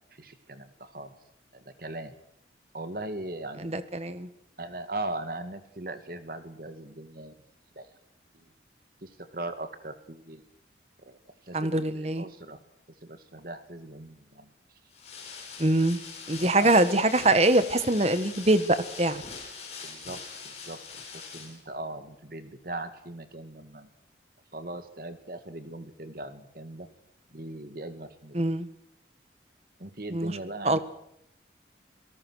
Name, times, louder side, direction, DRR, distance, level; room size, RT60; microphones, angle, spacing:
voice 1, 0.1-1.2 1.5-2.1 2.7-3.8 4.6-7.4 7.8-7.9 8.3-8.5 9.0-10.4 11.0-11.2 11.4-12.6 13.0-14.5 16.6-17.1 19.8-20.2 20.4-21.0 21.3-23.9 24.5-26.9 27.3-28.4 29.8-30.8, right 2 dB, 55° right, 9 dB, 2.2 m, -39 dB
voice 2, 3.7-4.3 11.5-12.2 15.6-16.0 16.3-19.2 28.3-28.7 30.1-30.3 30.6-30.8, right 2 dB, 35° right, 13 dB, 1.5 m, -23 dB
sound 1, 14.9-21.6, left 5 dB, 35° left, 6.6 m, -42 dB
27.0 x 18.5 x 6.4 m, 0.76 s
head